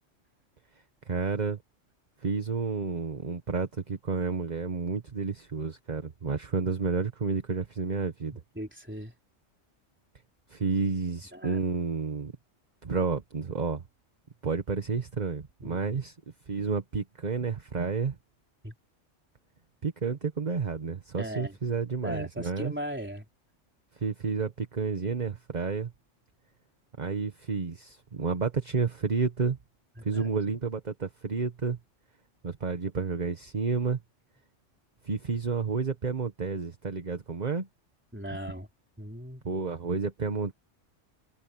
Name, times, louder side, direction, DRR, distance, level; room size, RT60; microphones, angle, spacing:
voice 1, 1.1-1.6 2.2-8.3 10.5-12.3 12.8-13.8 14.4-16.2 16.5-18.1 19.8-22.7 24.0-25.9 27.0-29.6 30.0-31.8 32.4-34.0 35.0-37.7 39.4-40.5, right 5 dB, 35° right, 1.2 m, -30 dB
voice 2, 8.6-9.1 11.3-11.6 15.6-16.0 18.6-18.7 21.2-21.6 22.0-23.3 30.0-30.3 38.1-38.7 39.0-39.4, equal, 10° right, 3.6 m, -38 dB
omnidirectional pair, 1.3 m